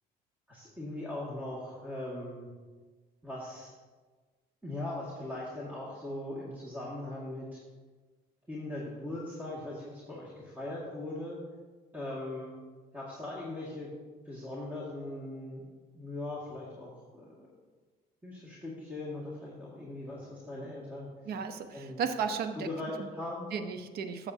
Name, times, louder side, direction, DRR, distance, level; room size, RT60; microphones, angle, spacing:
voice 1, 0.5-2.5 3.2-3.7 4.6-7.6 8.5-11.4 11.9-12.5 12.9-13.9 14.3-15.6 15.9-17.5 18.2-21.1 21.7-22.0 22.6-23.5, left 1 dB, 10° right, -6 dB, 1.9 m, -40 dB
voice 2, 21.3-22.7 23.5-24.3, right 6 dB, 70° right, 8 dB, 0.8 m, -34 dB
14.0 x 7.1 x 2.8 m, 1.4 s
cardioid pair, 110°, 17 cm